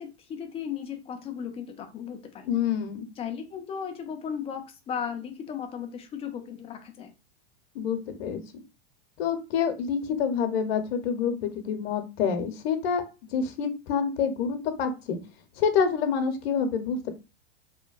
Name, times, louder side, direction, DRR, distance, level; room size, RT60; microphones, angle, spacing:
voice 1, 0.0-2.5 3.2-7.1, left 7 dB, 20° left, 6 dB, 0.4 m, -36 dB
voice 2, 2.5-3.1 7.7-8.4 9.2-13.0 13.3-15.2 15.6-17.1, left 6 dB, 65° left, 8 dB, 0.7 m, -27 dB
2.8 x 2.1 x 2.3 m, 0.29 s
hypercardioid pair, 115°, 33 cm